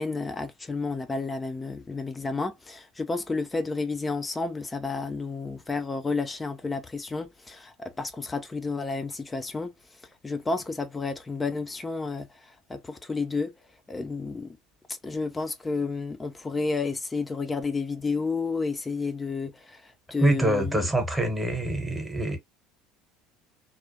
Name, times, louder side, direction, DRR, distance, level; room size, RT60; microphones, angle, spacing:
voice 1, 0.0-13.5 13.9-14.6 14.9-20.9, left 4 dB, 20° left, 0.4 m, -31 dB
voice 2, 20.2-22.4, right 1 dB, 10° right, 0.9 m, -25 dB
2.3 x 2.1 x 2.5 m
figure-of-eight pair, 65°, 0 cm